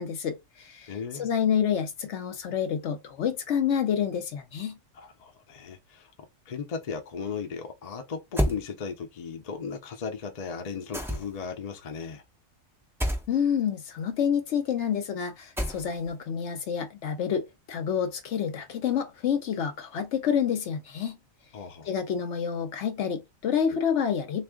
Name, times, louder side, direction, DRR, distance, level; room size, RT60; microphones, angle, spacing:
voice 1, 0.0-0.9 1.2-4.8 13.3-21.2 21.9-24.4, left 8 dB, 65° left, 0.8 m, -28 dB
voice 2, 0.9-1.3 4.9-6.1 6.5-12.2 21.5-21.9 23.7-23.8, left 6 dB, 45° left, 0.5 m, -36 dB
sound 1, 8.4-8.6 10.9-11.5 13.0-13.3 15.6-16.1, equal, 5° right, 0.3 m, -28 dB
3.5 x 2.4 x 3.5 m
omnidirectional pair, 1.4 m